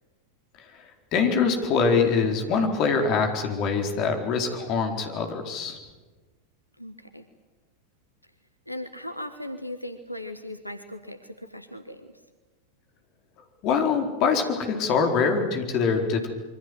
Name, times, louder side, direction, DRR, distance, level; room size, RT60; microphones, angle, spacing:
voice 1, 1.1-5.8 13.6-16.3, left 5 dB, 40° left, 4 dB, 4.3 m, -24 dB
voice 2, 6.8-7.2 8.7-12.1, left 1 dB, 90° left, 9 dB, 1.4 m, -38 dB
26.5 x 24.5 x 7.9 m, 1.3 s
figure-of-eight pair, 90°, 0 cm